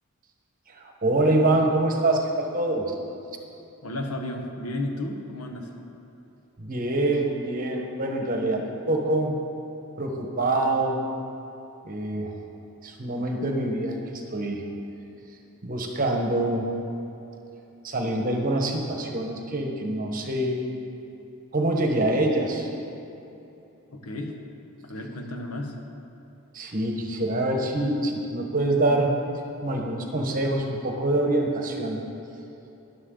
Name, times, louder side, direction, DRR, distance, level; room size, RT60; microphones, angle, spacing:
voice 1, 0.7-2.8 6.6-9.4 10.0-11.0 11.8-12.3 12.8-14.6 15.6-16.7 17.8-20.6 21.5-22.7 26.5-29.2 29.6-32.0, right 2 dB, 40° right, 2 dB, 1.3 m, -25 dB
voice 2, 3.8-5.7 23.9-24.4 24.8-25.8, left 1 dB, 85° left, 3 dB, 1.2 m, -33 dB
13.5 x 10.5 x 3.9 m, 3.0 s
head